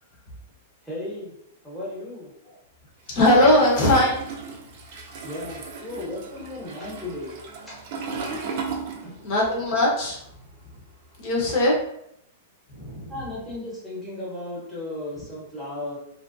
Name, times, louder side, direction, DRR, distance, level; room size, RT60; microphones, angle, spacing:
voice 1, 0.8-1.3 1.6-2.3 5.2-7.4 9.0-9.1 13.1-16.0, left 1 dB, ahead, -9 dB, 1.0 m, -35 dB
voice 2, 3.1-4.2 9.2-10.2 11.2-11.7 12.7-13.1, left 1 dB, 45° left, -3 dB, 1.0 m, -20 dB
Toilet flush, 3.1-9.5 9.8-11.4, right 4 dB, 50° right, 0.4 m, -36 dB
2.6 x 2.1 x 2.5 m, 0.75 s
hypercardioid pair, 150°, 0 cm